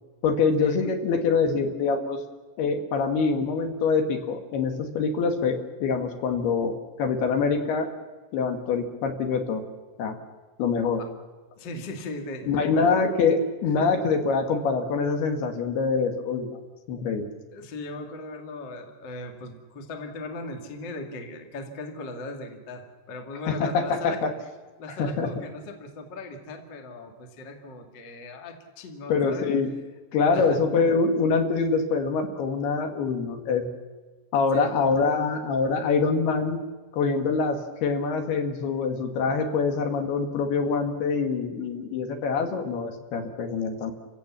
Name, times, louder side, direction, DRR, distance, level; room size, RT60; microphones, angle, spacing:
voice 1, 0.2-2.2 2.6-6.7 7.0-7.9 8.3-9.6 10.0-10.2 10.6-11.0 12.5-16.5 16.9-17.3 23.5-24.3 25.0-25.3 29.1-29.7 30.1-33.7 34.3-36.6 36.9-43.9, left 4 dB, 70° left, 6 dB, 3.3 m, -25 dB
voice 2, 11.6-13.0 13.8-13.9 17.5-24.3 24.8-29.5 30.3-30.6 34.5-34.7, left 2 dB, 40° left, 4 dB, 1.8 m, -38 dB
29.0 x 16.0 x 7.2 m, 1.3 s
omnidirectional pair, 5.1 m